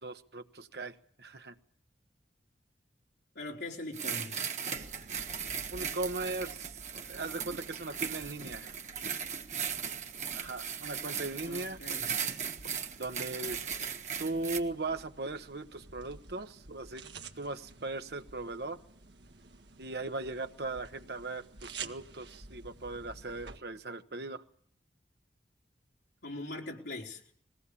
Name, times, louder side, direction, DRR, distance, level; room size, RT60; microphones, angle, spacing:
voice 1, 0.0-1.5 5.7-6.8 7.1-8.8 10.3-11.8 13.0-13.6 14.2-17.0 17.4-18.8 19.8-24.4, right 2 dB, 65° right, 8 dB, 1.2 m, -38 dB
voice 2, 3.3-4.5 11.5-12.1 26.2-27.2, left 2 dB, 75° left, -1 dB, 4.6 m, -41 dB
sound 1, 3.9-14.6, right 7 dB, 40° right, 1.6 m, -38 dB
sound 2, 4.7-23.6, right 4 dB, 80° right, 1.7 m, -52 dB
21.0 x 18.0 x 8.5 m, 0.63 s
head